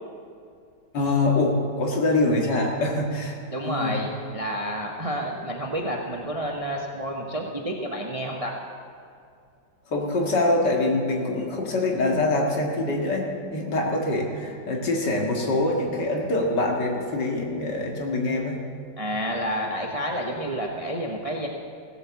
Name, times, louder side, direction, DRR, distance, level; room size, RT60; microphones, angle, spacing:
voice 1, 0.9-3.4 3.6-4.0 9.9-18.6, left 2 dB, 65° left, 0 dB, 2.4 m, -24 dB
voice 2, 3.5-8.6 19.0-21.5, equal, 25° right, 0 dB, 0.7 m, -29 dB
16.5 x 8.3 x 7.0 m, 2.4 s
omnidirectional pair, 2.0 m